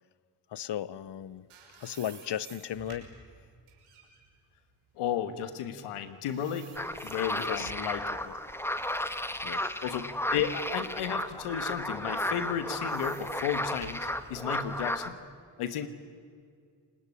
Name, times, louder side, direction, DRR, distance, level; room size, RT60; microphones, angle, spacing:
voice 1, 0.5-1.5 1.8-3.1 7.4-7.7 8.3-8.4 9.4-9.7, left 10 dB, 55° left, 0.9 m, -36 dB
sound 1, 1.1-6.0 6.3-8.0 8.5-10.4 10.9-11.0 12.1-15.1, right 5 dB, 85° right, 5.9 m, -53 dB
voice 2, 5.0-6.8 7.0-8.2 9.8-15.2 15.6-15.9, left 9 dB, 90° left, 1.4 m, -33 dB
sound 2, 6.8-15.1, left 1 dB, 5° left, 1.6 m, -34 dB
29.0 x 20.0 x 9.8 m
supercardioid pair, 50°, 49 cm